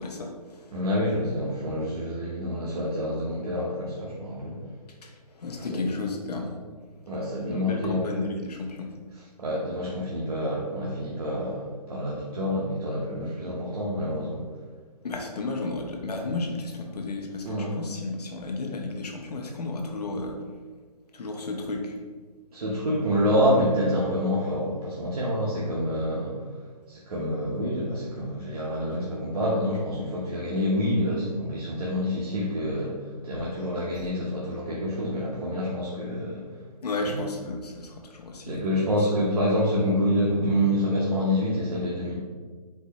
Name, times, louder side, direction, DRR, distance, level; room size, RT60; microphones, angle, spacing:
voice 1, 0.0-0.7 5.0-6.6 7.5-8.9 15.0-20.4 21.1-22.0 34.0-34.1 36.8-38.6, left 3 dB, 75° left, 2 dB, 0.9 m, -33 dB
voice 2, 0.7-4.6 5.7-5.8 7.1-8.1 9.4-14.4 17.4-17.8 22.5-26.5 26.9-36.5 37.0-37.2 38.5-42.1, equal, 65° right, -5 dB, 1.0 m, -27 dB
4.6 x 2.7 x 4.1 m, 1.5 s
hypercardioid pair, 170°, 21 cm